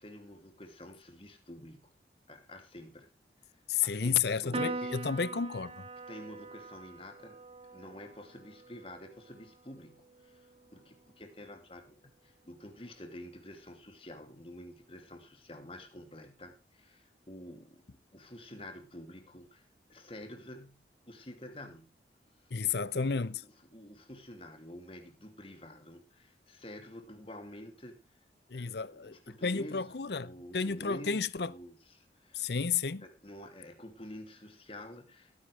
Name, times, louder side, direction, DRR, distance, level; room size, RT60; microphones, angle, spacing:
voice 1, 0.0-1.9 2.3-3.1 3.4-3.5 3.8-5.0 6.1-7.4 7.7-22.0 22.7-28.2 28.5-32.4 33.0-35.3, left 1 dB, 30° left, 2.7 m, -49 dB
voice 2, 3.7-5.8 22.5-23.4 28.5-29.2 29.4-31.5 32.3-33.0, left 6 dB, 70° left, 0.7 m, -32 dB
Piano, 4.5-11.2, right 2 dB, 30° right, 1.0 m, -43 dB
17.5 x 10.0 x 3.4 m
head